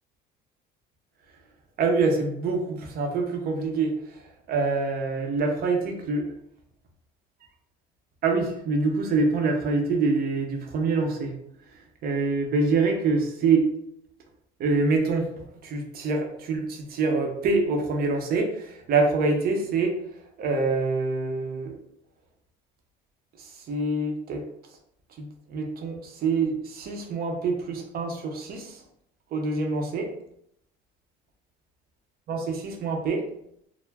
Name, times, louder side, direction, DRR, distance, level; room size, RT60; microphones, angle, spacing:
voice 1, 1.8-3.9 4.5-6.3 8.2-11.3 12.0-13.7 14.6-15.3 15.6-19.9 20.4-21.7 23.7-24.4 25.2-28.7 29.3-30.1 32.3-32.4 32.6-33.2, right 3 dB, 50° right, 3 dB, 0.6 m, -25 dB
2.2 x 2.1 x 3.3 m, 0.75 s
supercardioid pair, 95°, 20 cm